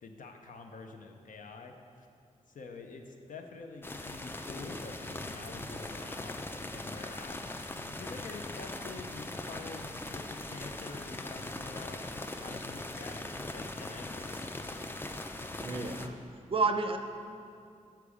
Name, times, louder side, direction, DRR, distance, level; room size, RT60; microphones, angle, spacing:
voice 1, 0.0-2.1 2.5-6.4 6.7-7.4 7.9-12.0 12.4-14.4, left 3 dB, 75° left, 4 dB, 0.7 m, -47 dB
sound 1, 3.8-16.1, left 2 dB, 15° left, 0.4 m, -40 dB
voice 2, 15.6-16.2 16.5-17.0, right 4 dB, 40° right, 6 dB, 0.5 m, -30 dB
6.7 x 5.9 x 4.9 m, 2.4 s
wide cardioid pair, 125°, 14 cm